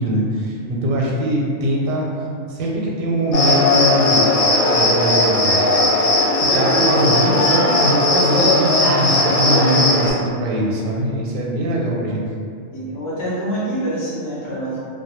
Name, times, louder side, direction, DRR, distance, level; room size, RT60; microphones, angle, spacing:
voice 1, 0.0-2.1 2.5-4.3 4.7-5.6 6.4-12.2, equal, 85° right, -2 dB, 1.0 m, -22 dB
Cricket, 3.3-10.1, left 2 dB, 70° left, 0.8 m, -17 dB
voice 2, 12.7-14.8, right 1 dB, 35° left, -8 dB, 0.5 m, -26 dB
2.2 x 2.1 x 2.9 m, 2.3 s
omnidirectional pair, 1.4 m